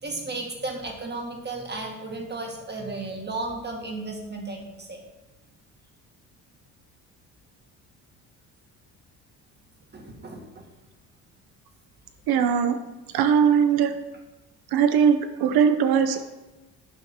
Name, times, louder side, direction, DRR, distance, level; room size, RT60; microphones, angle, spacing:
voice 1, 0.0-5.0 9.9-10.7, right 2 dB, 25° right, 1 dB, 2.1 m, -34 dB
voice 2, 12.3-12.8 13.1-13.9 14.7-16.2, right 7 dB, 70° right, 9 dB, 1.0 m, -20 dB
9.2 x 5.7 x 4.5 m, 1.1 s
supercardioid pair, 80°, 38 cm